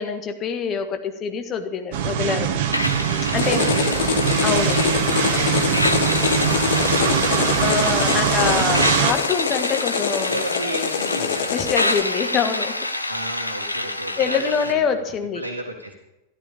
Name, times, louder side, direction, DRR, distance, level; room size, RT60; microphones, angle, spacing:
voice 1, 0.0-2.5 3.3-3.6 4.4-4.8 7.6-10.4 11.5-12.8 13.0-13.1 14.2-15.4, left 6 dB, 30° left, 6 dB, 1.6 m, -25 dB
sound 1, 1.9-9.1, right 8 dB, 50° right, 1.4 m, -22 dB
sound 2, 2.7-14.7, left 1 dB, 85° left, 1.0 m, -27 dB
sound 3, 3.4-12.0, left 7 dB, 55° left, 1.4 m, -25 dB
voice 2, 3.4-4.3 5.9-7.5 10.3-11.6 13.1-15.0 15.3-15.9, right 1 dB, 80° right, -1 dB, 1.7 m, -33 dB
13.5 x 13.0 x 5.1 m, 0.93 s
figure-of-eight pair, 90°, 0 cm